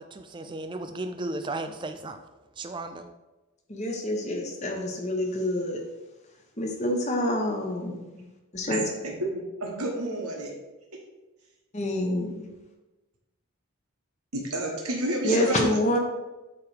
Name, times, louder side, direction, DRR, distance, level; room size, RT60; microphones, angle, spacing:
voice 1, 0.0-2.2 2.6-3.1, right 2 dB, 20° right, 7 dB, 0.4 m, -35 dB
voice 2, 3.7-5.8 6.6-8.3 8.5-8.8 11.7-12.5 15.2-16.0, left 1 dB, 30° left, 1 dB, 1.0 m, -27 dB
voice 3, 9.0-10.5 14.3-15.8, right 1 dB, 80° right, -1 dB, 1.3 m, -30 dB
8.3 x 3.2 x 4.9 m, 1.1 s
head